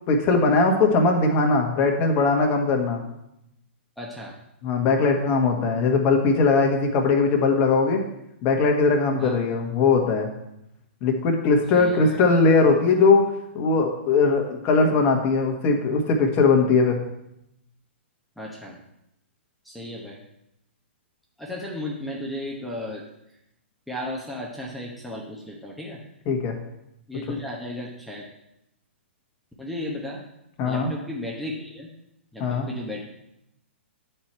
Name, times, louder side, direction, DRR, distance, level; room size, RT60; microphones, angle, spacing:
voice 1, 0.1-3.0 4.6-8.0 8.4-10.3 11.0-13.3 13.5-17.0 26.3-26.5 30.6-30.9 32.4-32.7, left 4 dB, 35° left, 2 dB, 1.4 m, -20 dB
voice 2, 4.0-4.4 9.2-9.4 11.7-12.2 18.4-18.8 19.6-20.2 21.4-23.0 23.9-26.0 27.1-28.3 29.6-30.2 30.6-31.9 32.3-33.0, left 1 dB, ahead, -3 dB, 1.0 m, -34 dB
9.2 x 4.5 x 4.4 m, 0.82 s
hypercardioid pair, 125°, 7 cm